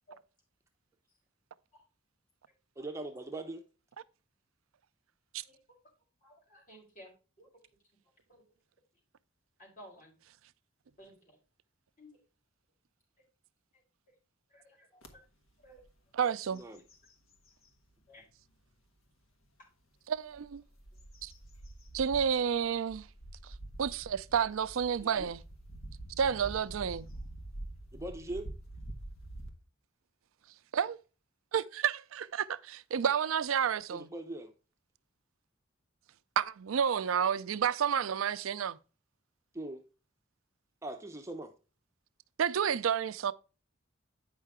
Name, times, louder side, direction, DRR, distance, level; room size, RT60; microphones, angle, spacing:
voice 1, 2.8-3.6 16.5-16.8 25.2-25.3 27.9-28.5 33.9-34.5 39.5-39.8 40.8-41.5, right 2 dB, 15° right, 0.7 m, -41 dB
voice 2, 6.2-7.1 7.4-7.5 8.3-8.4 9.6-10.1 11.0-11.4 12.0-12.1 14.5-15.0 15.6-15.8 18.1-18.2, equal, 45° left, 4.3 m, -55 dB
sound 1, 15.0-15.1 15.6-15.9 16.2-17.7 18.3-18.4 20.1-29.5, right 1 dB, 75° left, 1.4 m, -46 dB
voice 3, 16.1-16.6 20.1-20.6 21.2-21.3 21.9-23.1 23.4-23.5 23.8-25.4 26.2-27.1 30.7-31.0 31.5-34.1 36.4-38.8 42.4-43.3, right 7 dB, 85° right, 0.4 m, -30 dB
9.0 x 5.6 x 3.6 m
head